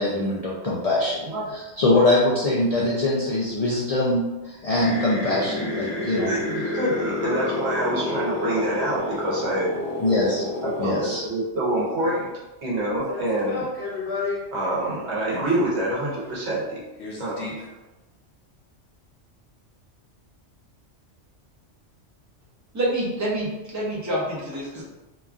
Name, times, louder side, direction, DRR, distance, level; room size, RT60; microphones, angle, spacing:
voice 1, 0.0-1.3 1.5-6.3 10.0-10.4 10.8-11.2, left 2 dB, 85° left, -5 dB, 0.3 m, -23 dB
sound 1, 4.7-11.2 11.7-12.2 12.9-15.7 16.2-16.3 16.5-16.6 17.0-17.7, left 2 dB, 70° left, 1.0 m, -30 dB
voice 2, 5.6-9.7 10.4-12.1 12.6-13.6 14.5-16.8 17.2-17.5, right 1 dB, 70° right, -5 dB, 1.1 m, -26 dB
voice 3, 22.7-24.8, right 1 dB, 20° right, -6 dB, 0.5 m, -27 dB
2.9 x 2.3 x 2.4 m, 1.1 s
omnidirectional pair, 1.2 m